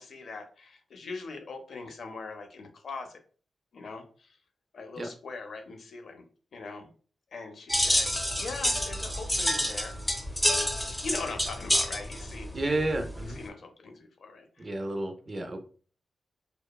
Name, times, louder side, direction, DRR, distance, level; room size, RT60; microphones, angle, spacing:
voice 1, 0.0-3.2 3.7-4.4 4.7-6.3 6.5-6.9 7.3-10.0 11.0-12.7 13.2-14.7, left 3 dB, 70° left, 5 dB, 0.5 m, -41 dB
sound 1, 7.7-13.4, equal, 15° left, 0.6 m, -28 dB
voice 2, 12.5-13.4 14.6-15.6, right 2 dB, 35° right, 5 dB, 0.5 m, -31 dB
2.9 x 2.1 x 2.3 m, 0.40 s
wide cardioid pair, 105°, 0 cm